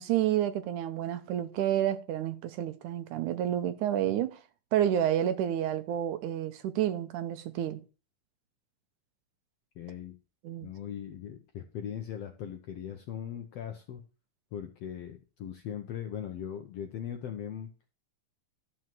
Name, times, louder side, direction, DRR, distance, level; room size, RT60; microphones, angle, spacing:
voice 1, 0.0-4.4 4.7-7.8 10.4-10.7, right 11 dB, 75° right, 2.0 m, -29 dB
voice 2, 9.7-10.2 10.6-14.0 14.5-17.7, left 9 dB, 70° left, 1.5 m, -39 dB
12.0 x 4.5 x 7.5 m
omnidirectional pair, 3.9 m